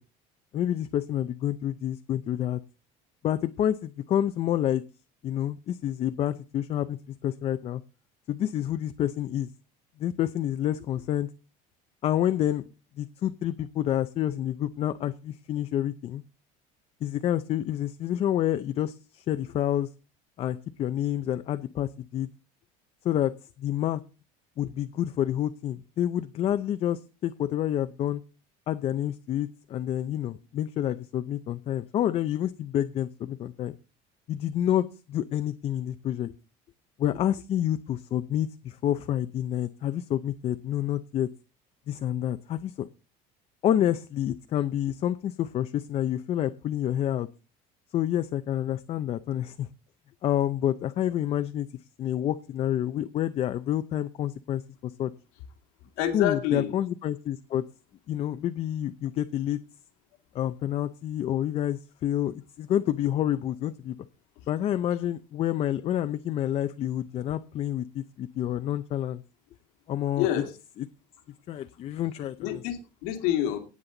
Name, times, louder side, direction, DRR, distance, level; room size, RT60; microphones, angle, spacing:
voice 1, 0.5-2.6 3.2-4.8 5.2-7.0 7.2-7.8 8.3-9.5 10.0-11.3 12.0-12.6 13.0-16.2 17.0-19.9 20.4-22.3 23.0-23.3 23.6-24.0 24.6-28.2 28.7-33.7 34.3-36.3 37.0-41.3 41.9-42.9 43.6-47.3 47.9-49.7 50.2-51.7 52.0-55.1 56.1-57.6 58.1-59.6 60.3-64.0 64.5-69.2 69.9-70.5 70.8-70.9 71.5-72.6, left 11 dB, 40° left, 11 dB, 0.6 m, -28 dB
voice 2, 56.0-56.8 70.2-70.5 72.4-73.6, left 11 dB, 90° left, 6 dB, 2.5 m, -27 dB
18.0 x 7.5 x 3.9 m, 0.33 s
cardioid pair, 150°, 17 cm